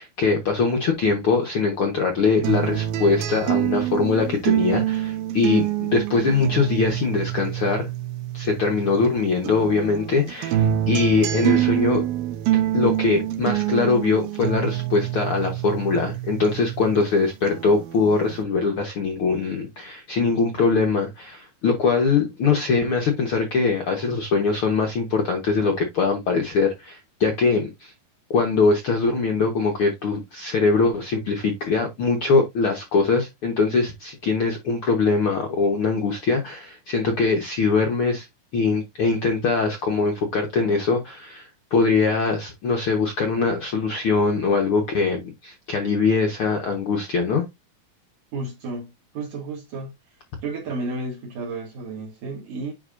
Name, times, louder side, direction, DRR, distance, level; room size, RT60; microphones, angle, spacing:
voice 1, 0.0-7.9 8.3-12.0 12.5-27.9 28.3-38.3 38.5-47.4, left 4 dB, 75° left, 1.2 m, -22 dB
sound 1, 2.4-9.1 9.5-17.1 17.5-18.4, right 12 dB, 90° right, 2.7 m, -26 dB
voice 2, 48.3-49.9 50.4-52.7, right 3 dB, 65° right, 3.5 m, -32 dB
9.7 x 3.8 x 2.5 m
omnidirectional pair, 4.2 m